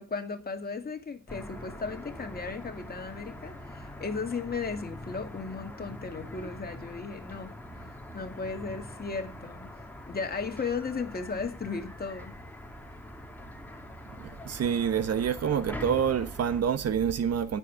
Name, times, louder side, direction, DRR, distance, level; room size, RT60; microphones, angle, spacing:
voice 1, 0.0-7.6 8.1-9.7 10.1-12.4, left 4 dB, 30° left, 2.4 m, -35 dB
sound 1, 1.3-16.6, left 1 dB, 5° left, 2.4 m, -44 dB
voice 2, 14.4-17.6, right 8 dB, 55° right, 1.2 m, -27 dB
22.5 x 7.6 x 3.6 m
cardioid pair, 90°, 30 cm